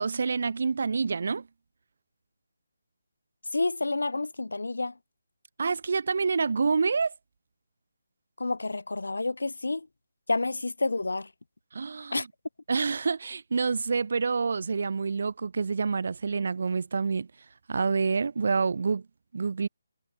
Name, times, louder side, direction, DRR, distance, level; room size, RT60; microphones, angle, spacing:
voice 1, 0.0-1.4 5.6-7.1 11.7-12.3 12.7-17.3 17.7-19.0 19.3-19.7, right 5 dB, 50° right, 1.8 m, -27 dB
voice 2, 3.5-4.9 8.4-9.9 10.3-11.3 12.1-12.2, left 2 dB, 65° left, 1.4 m, -29 dB
figure-of-eight pair, 145°, 0 cm